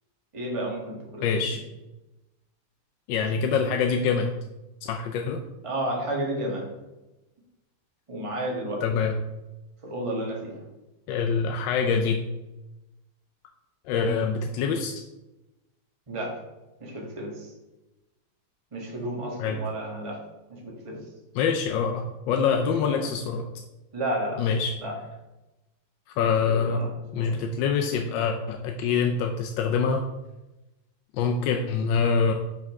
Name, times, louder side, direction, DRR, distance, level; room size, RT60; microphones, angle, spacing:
voice 1, 0.3-1.4 5.6-6.7 8.1-8.8 9.8-10.6 13.9-14.2 16.1-16.4 16.8-17.5 18.7-20.2 20.5-21.0 22.8-23.0 23.9-24.4 24.8-24.9 26.2-26.9 27.1-27.4, right 1 dB, 20° right, -2 dB, 1.2 m, -32 dB
voice 2, 1.2-1.6 3.1-4.3 4.8-5.4 8.8-9.2 11.1-12.2 13.9-14.9 19.4-19.6 21.3-23.4 24.4-24.7 26.2-26.8 27.1-30.0 31.1-32.3, left 5 dB, 75° left, 4 dB, 1.1 m, -25 dB
6.3 x 5.7 x 3.5 m, 1.0 s
omnidirectional pair, 2.4 m